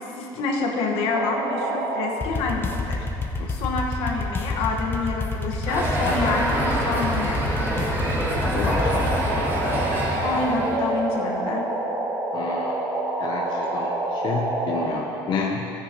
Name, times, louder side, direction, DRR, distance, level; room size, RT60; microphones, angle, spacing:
voice 1, 0.2-3.0 3.5-7.6 10.2-11.6, left 3 dB, 75° left, -1 dB, 1.4 m, -27 dB
sound 1, 1.1-2.1 2.7-2.8 8.7-14.9, right 2 dB, 40° right, 2.1 m, -27 dB
sound 2, 2.2-9.2, left 2 dB, 20° left, 0.8 m, -29 dB
sound 3, 5.7-10.8, equal, 20° right, 2.2 m, -26 dB
voice 2, 8.5-9.2 12.3-12.8 13.2-15.7, left 4 dB, 50° left, -1 dB, 0.8 m, -30 dB
13.5 x 9.6 x 3.0 m, 2.9 s
cardioid pair, 105°, 10 cm